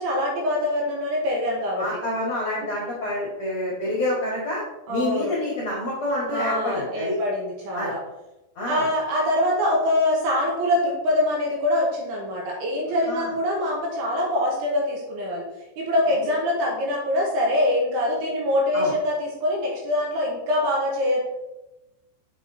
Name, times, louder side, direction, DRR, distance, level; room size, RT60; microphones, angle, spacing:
voice 1, 0.0-1.9 4.9-5.3 6.3-8.0 8.7-15.4 15.8-21.2, left 1 dB, 75° right, -1 dB, 2.7 m, -24 dB
voice 2, 1.8-4.6 4.9-7.1 7.7-7.9 8.6-8.9 13.1-13.3 18.7-18.9, left 1 dB, 60° left, -6 dB, 1.8 m, -27 dB
7.8 x 5.5 x 2.6 m, 0.98 s
omnidirectional pair, 5.3 m